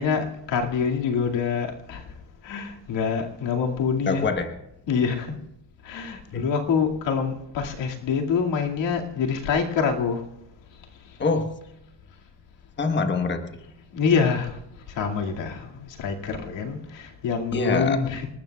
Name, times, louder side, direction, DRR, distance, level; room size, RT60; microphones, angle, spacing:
voice 1, 0.0-2.1 2.4-4.3 4.9-5.4 5.8-10.2 13.9-14.6 14.9-18.3, left 6 dB, 90° left, 1 dB, 2.3 m, -26 dB
voice 2, 4.1-4.5 6.3-6.5 11.2-11.5 12.8-13.5 17.5-18.0, left 4 dB, 25° left, 7 dB, 1.2 m, -24 dB
28.0 x 19.5 x 2.3 m, 0.86 s
cardioid pair, 155°, 43 cm